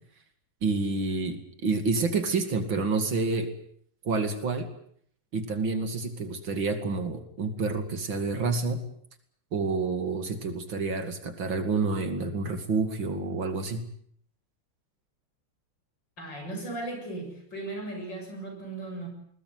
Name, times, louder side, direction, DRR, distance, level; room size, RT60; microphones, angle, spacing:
voice 1, 0.6-1.4 1.6-3.5 4.0-4.7 5.3-8.8 9.5-13.8, right 4 dB, 65° right, 8 dB, 3.2 m, -28 dB
voice 2, 16.2-19.1, right 2 dB, 55° left, 4 dB, 8.4 m, -37 dB
21.5 x 20.5 x 9.5 m, 0.65 s
omnidirectional pair, 2.3 m